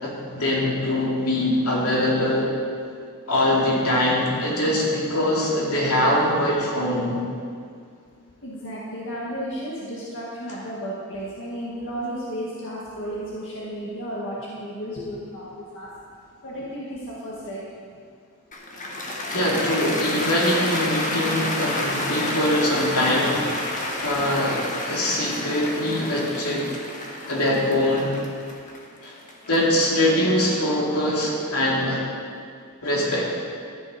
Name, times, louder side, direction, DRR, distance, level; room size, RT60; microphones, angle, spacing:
voice 1, 0.0-2.5 3.3-7.2 19.3-23.6 24.0-26.6 27.3-28.2 29.0-29.1 29.5-32.0 32.8-33.3, left 1 dB, 85° left, -4 dB, 3.1 m, -23 dB
voice 2, 8.4-15.9 16.4-17.6, equal, 60° left, -6 dB, 1.9 m, -33 dB
Cheering / Applause, 18.5-30.7, left 1 dB, 35° left, 1.7 m, -30 dB
13.5 x 10.0 x 5.2 m, 2.2 s
head